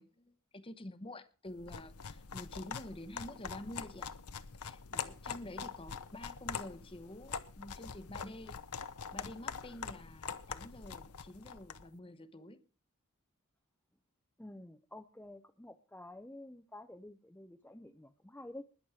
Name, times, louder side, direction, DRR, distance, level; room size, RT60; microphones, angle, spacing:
voice 1, 0.0-4.1 4.6-8.6 9.1-12.6, left 1 dB, 25° left, 0.9 m, -48 dB
sound 1, 1.6-11.9, left 6 dB, 80° left, 0.9 m, -44 dB
voice 2, 14.4-18.6, left 1 dB, 10° left, 0.6 m, -50 dB
20.5 x 7.1 x 4.8 m
head